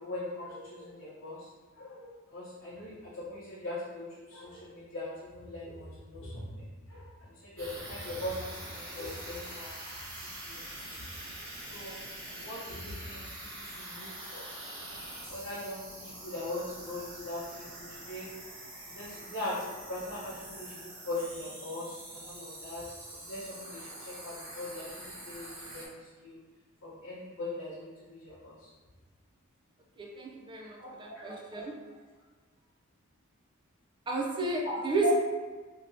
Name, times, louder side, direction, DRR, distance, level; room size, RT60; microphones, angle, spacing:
voice 1, 0.0-1.5 1.7-9.7 10.3-10.9 11.7-12.0 12.3-13.3 13.6-14.4 15.3-18.3 18.9-26.4 26.8-28.7 30.8-30.9 35.0-35.1, left 1 dB, 75° left, -11 dB, 0.9 m, -40 dB
sound 1, 7.6-25.9, right 1 dB, 65° right, 1.0 m, -45 dB
voice 2, 30.0-31.7 34.1-35.1, right 3 dB, 25° right, -1 dB, 0.4 m, -32 dB
2.9 x 2.8 x 2.7 m, 1.4 s
head